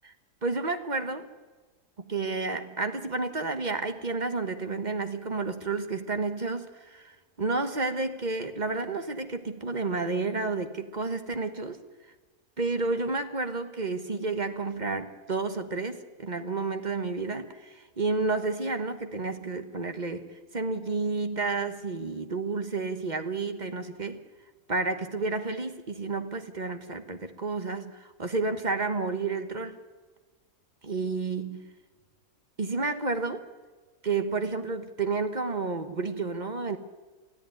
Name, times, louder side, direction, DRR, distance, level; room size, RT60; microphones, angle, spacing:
voice 1, 0.4-1.3 2.1-11.8 12.6-20.3 20.5-24.2 24.7-29.8 30.8-31.6 32.6-33.4 34.0-36.8, right 3 dB, 30° right, 8 dB, 1.2 m, -31 dB
21.5 x 14.0 x 9.2 m, 1.4 s
omnidirectional pair, 1.6 m